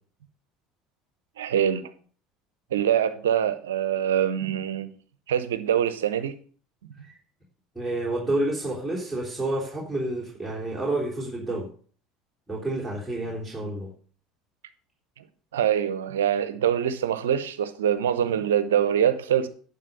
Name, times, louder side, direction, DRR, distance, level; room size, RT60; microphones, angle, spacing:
voice 1, 1.4-1.9 2.7-4.9 5.3-6.4 15.5-19.5, right 9 dB, 75° right, 0.8 m, -24 dB
voice 2, 7.8-11.7 12.5-13.9, right 2 dB, 5° right, 3.8 m, -29 dB
11.0 x 5.3 x 6.7 m
figure-of-eight pair, 70°, 0 cm